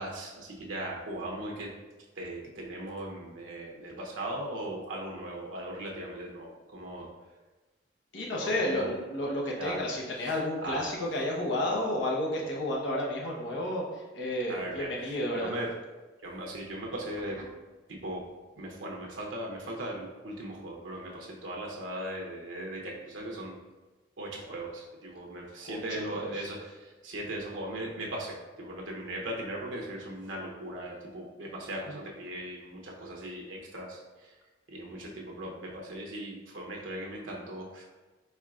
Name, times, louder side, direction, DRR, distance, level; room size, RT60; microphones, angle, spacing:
voice 1, 0.0-1.7 2.2-7.1 8.4-8.9 9.6-9.8 10.6-10.9 14.5-15.7 16.2-17.5 17.9-18.3 18.6-23.6 24.2-34.4 34.7-37.8, right 1 dB, 90° right, -1 dB, 0.8 m, -38 dB
voice 2, 8.1-15.5 25.7-26.4, left 1 dB, 75° left, -2 dB, 1.0 m, -31 dB
4.4 x 4.1 x 2.4 m, 1.2 s
head